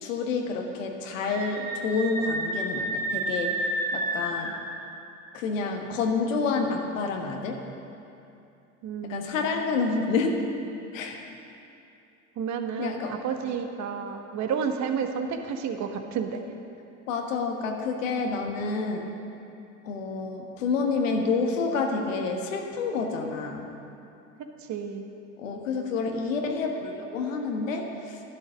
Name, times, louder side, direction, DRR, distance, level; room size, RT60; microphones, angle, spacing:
voice 1, 0.0-3.6 3.9-4.6 5.3-7.6 9.0-10.4 10.9-11.2 12.8-13.2 17.1-19.0 19.8-23.7 25.4-28.2, left 4 dB, 75° left, 3 dB, 1.5 m, -28 dB
Screaming, 1.2-4.6, right 1 dB, 70° right, 2.9 m, -30 dB
voice 2, 8.8-9.6 12.4-16.4 24.7-25.0, right 6 dB, 45° right, 5 dB, 1.4 m, -31 dB
11.5 x 11.0 x 6.3 m, 2.7 s
hypercardioid pair, 70°, 39 cm